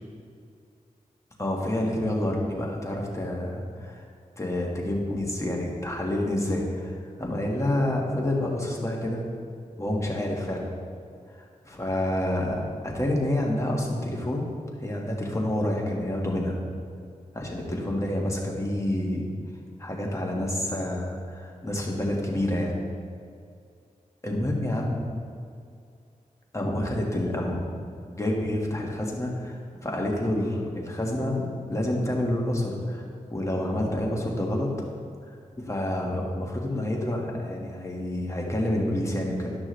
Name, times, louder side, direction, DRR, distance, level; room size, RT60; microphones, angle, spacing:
voice 1, 1.4-4.1 4.4-9.3 9.8-10.7 11.6-14.5 14.8-16.6 17.3-19.3 19.8-22.7 24.2-25.0 26.5-27.8 28.1-33.0 33.3-34.7 35.6-39.6, left 1 dB, 20° left, -2 dB, 1.6 m, -28 dB
11.5 x 6.1 x 3.2 m, 2.3 s
cardioid pair, 60°, 14 cm